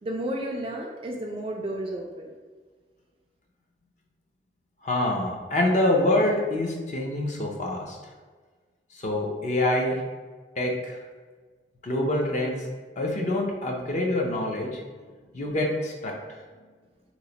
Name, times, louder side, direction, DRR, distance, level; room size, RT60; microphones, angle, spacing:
voice 1, 0.0-2.3, right 1 dB, 30° right, 1 dB, 0.3 m, -32 dB
voice 2, 4.8-8.0 8.9-10.0 10.6-11.0 11.8-12.6 13.0-14.8 15.3-16.1, left 1 dB, 40° left, 0 dB, 0.5 m, -26 dB
3.0 x 2.1 x 3.8 m, 1.4 s
head